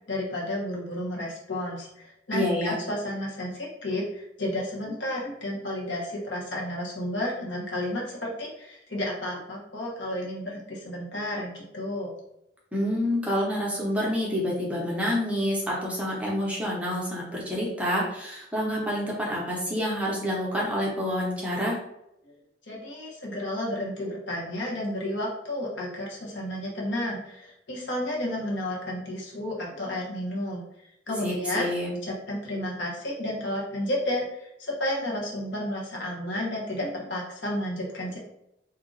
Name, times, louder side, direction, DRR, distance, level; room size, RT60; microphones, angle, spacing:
voice 1, 0.1-12.1 22.2-22.3 22.7-30.6 31.1-31.7 32.0-38.2, left 1 dB, 85° left, -3 dB, 1.1 m, -32 dB
voice 2, 2.3-2.7 12.7-21.8 31.2-31.9, equal, 5° right, -4 dB, 0.7 m, -28 dB
2.7 x 2.4 x 3.9 m, 0.83 s
head